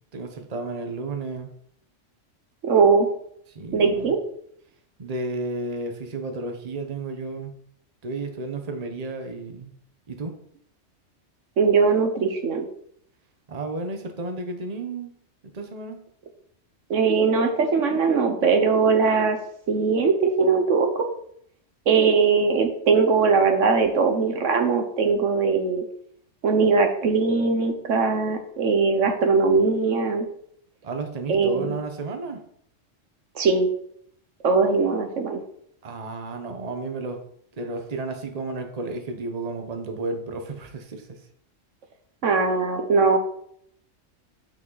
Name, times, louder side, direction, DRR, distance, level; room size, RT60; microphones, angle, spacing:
voice 1, 0.1-1.5 3.5-4.1 5.0-7.6 8.0-9.7 10.1-10.3 13.5-15.1 15.5-16.0 30.8-32.4 35.8-37.2 37.6-41.2, right 3 dB, 35° right, 5 dB, 1.0 m, -32 dB
voice 2, 2.6-3.1 3.7-4.2 11.6-12.6 16.9-19.4 19.7-21.1 21.9-25.8 26.4-30.3 31.3-31.7 33.3-33.7 34.4-35.4 42.2-43.2, right 4 dB, 75° right, 6 dB, 1.4 m, -20 dB
8.5 x 6.1 x 4.0 m, 0.67 s
omnidirectional pair, 1.3 m